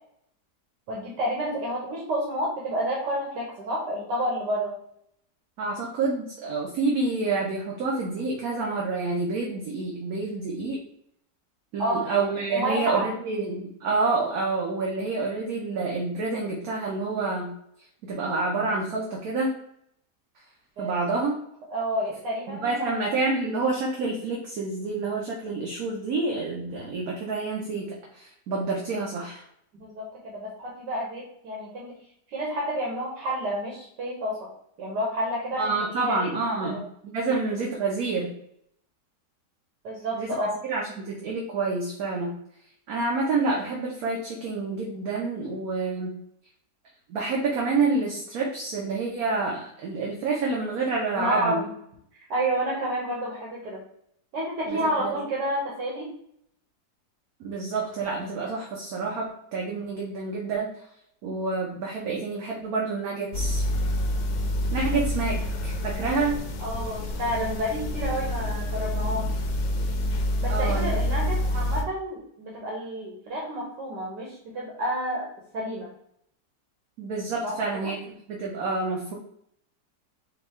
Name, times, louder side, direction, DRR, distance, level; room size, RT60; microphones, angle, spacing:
voice 1, 0.9-4.7 11.8-12.1 12.5-13.1 20.8-21.2 21.7-23.0 29.7-31.9 32.3-34.4 34.8-35.6 35.9-36.3 36.6-36.8 39.8-40.6 51.1-51.7 52.1-53.8 54.3-56.1 66.6-69.3 70.4-75.3 75.5-75.9 77.4-77.5 77.8-77.9, equal, 80° right, -4 dB, 1.6 m, -30 dB
voice 2, 5.6-10.8 11.7-17.5 18.1-19.5 20.8-21.4 22.5-29.4 35.6-38.3 40.1-42.3 42.9-46.1 47.1-51.6 54.7-55.1 57.4-60.7 61.2-63.6 64.7-66.4 70.5-71.0 77.0-78.0 78.3-79.1, right 3 dB, 65° right, -2 dB, 1.2 m, -28 dB
sound 1, 63.3-71.8, left 1 dB, 65° left, 0.8 m, -27 dB
4.6 x 2.3 x 4.3 m, 0.71 s
omnidirectional pair, 1.8 m